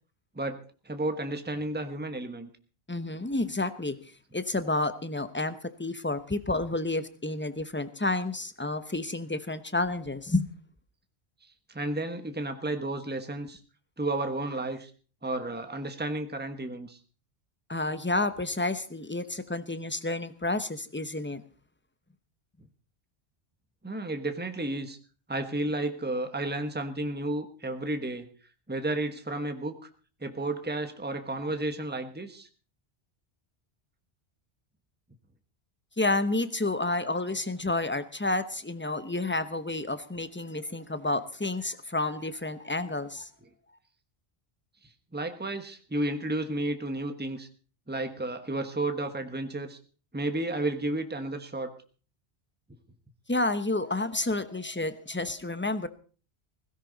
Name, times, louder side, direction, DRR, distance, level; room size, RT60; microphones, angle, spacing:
voice 1, 0.8-2.5 11.7-13.6 14.0-14.9 15.2-17.0 23.8-25.0 25.3-28.3 28.7-29.9 30.2-32.5 45.1-47.5 47.9-49.8 50.1-51.7, right 2 dB, 10° right, 7 dB, 1.2 m, -32 dB
voice 2, 2.9-4.0 4.3-10.5 17.7-21.4 36.0-43.3 53.3-55.9, left 2 dB, 10° left, 12 dB, 0.8 m, -30 dB
17.0 x 16.0 x 4.0 m, 0.38 s
omnidirectional pair, 1.1 m